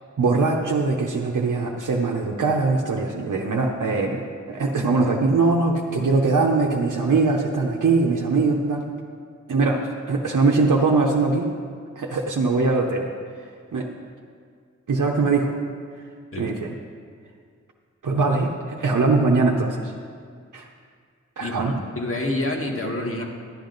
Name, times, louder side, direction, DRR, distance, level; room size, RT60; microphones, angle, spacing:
voice 1, 0.2-8.9 9.5-9.8 10.1-11.5 12.0-13.0 13.7-13.9 14.9-15.5 16.4-16.7 18.0-19.9 20.5-20.7 21.4-21.8, right 3 dB, 80° right, 0 dB, 0.8 m, -21 dB
voice 2, 21.4-23.2, left 1 dB, 45° left, 0 dB, 1.5 m, -27 dB
11.0 x 10.5 x 3.9 m, 2.1 s
wide cardioid pair, 80°, 31 cm